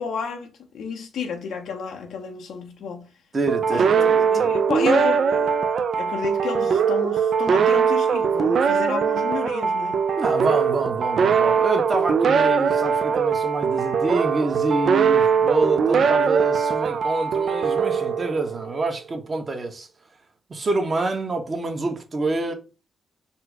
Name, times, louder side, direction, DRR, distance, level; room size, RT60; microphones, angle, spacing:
voice 1, 0.0-3.1 3.7-5.5 5.9-10.0, left 5 dB, 85° left, 0.7 m, -31 dB
voice 2, 3.3-4.5 10.2-19.9 20.5-22.5, right 3 dB, 35° right, 1.1 m, -26 dB
sound 1, 3.5-18.8, right 6 dB, 65° right, 0.4 m, -21 dB
4.4 x 2.1 x 4.6 m
cardioid pair, 95°, 0 cm